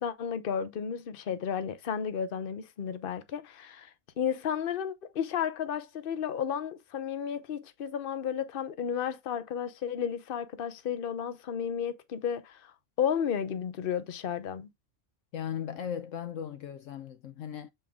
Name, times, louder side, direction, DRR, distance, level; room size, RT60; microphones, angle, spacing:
voice 1, 0.0-3.9 4.2-12.7 13.0-14.7, left 8 dB, 45° left, 0.9 m, -33 dB
voice 2, 15.3-17.7, left 9 dB, 70° left, 1.0 m, -37 dB
7.8 x 3.5 x 3.6 m
omnidirectional pair, 1.5 m